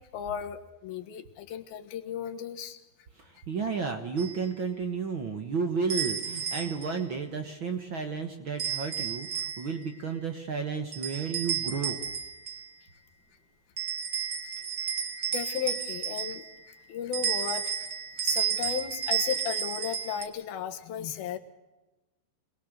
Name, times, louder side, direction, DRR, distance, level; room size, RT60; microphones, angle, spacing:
voice 1, 0.1-2.8 15.3-16.4 16.9-17.9 18.2-21.4, left 8 dB, 70° left, 7 dB, 3.2 m, -35 dB
voice 2, 3.1-12.0, right 5 dB, 65° right, 6 dB, 1.2 m, -32 dB
sound 1, 4.2-4.4 5.9-7.0 8.6-9.8 10.9-12.7 13.8-16.6 17.1-20.2, right 8 dB, 45° right, 1.4 m, -32 dB
26.5 x 20.5 x 6.7 m, 1.1 s
omnidirectional pair, 4.6 m